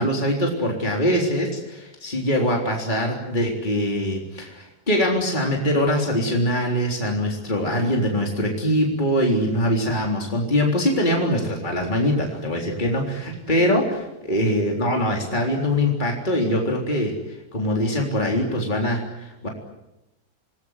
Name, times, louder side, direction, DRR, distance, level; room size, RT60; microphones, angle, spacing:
voice 1, 0.0-17.1 17.5-19.5, equal, 30° left, 0 dB, 4.0 m, -23 dB
28.0 x 20.0 x 9.8 m, 0.94 s
omnidirectional pair, 1.7 m